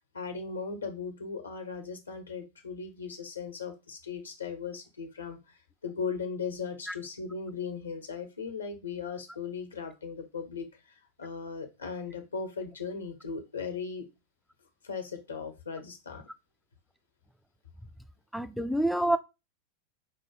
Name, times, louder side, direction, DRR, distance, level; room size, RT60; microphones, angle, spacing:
voice 1, 0.1-5.6 5.8-14.0 14.8-16.2, left 5 dB, 75° left, 1.0 m, -38 dB
voice 2, 18.3-19.2, right 1 dB, ahead, 0.3 m, -27 dB
4.6 x 2.2 x 4.7 m
figure-of-eight pair, 90°, 0 cm